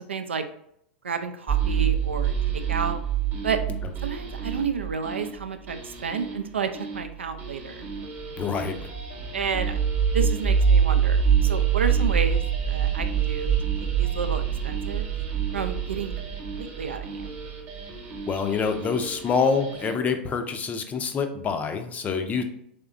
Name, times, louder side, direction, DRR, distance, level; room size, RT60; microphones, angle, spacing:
voice 1, 0.1-0.4 1.0-3.0 3.4-3.6 4.0-7.9 9.3-9.7 10.1-13.5 14.0-15.1 15.5-16.1 16.6-17.2, right 5 dB, 85° right, 8 dB, 0.4 m, -31 dB
sound 1, 1.5-19.9, right 7 dB, 35° right, 0.9 m, -26 dB
voice 2, 8.4-8.9 18.3-22.4, left 5 dB, 25° left, 7 dB, 0.5 m, -26 dB
3.6 x 3.2 x 2.4 m, 0.72 s
hypercardioid pair, 100°, 6 cm